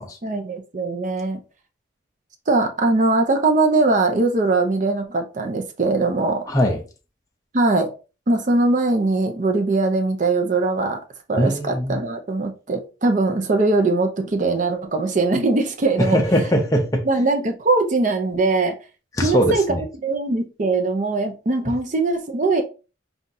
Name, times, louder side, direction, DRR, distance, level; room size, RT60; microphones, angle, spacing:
voice 1, 0.2-1.4 2.5-6.4 7.5-7.9 8.3-11.0 11.3-16.2 17.1-18.7 19.2-22.6, right 3 dB, 40° right, 0.6 m, -21 dB
voice 2, 6.5-6.8 11.4-12.0 16.0-17.0 19.2-19.8 21.7-21.8, equal, 20° left, 0.6 m, -21 dB
5.5 x 2.4 x 2.6 m
head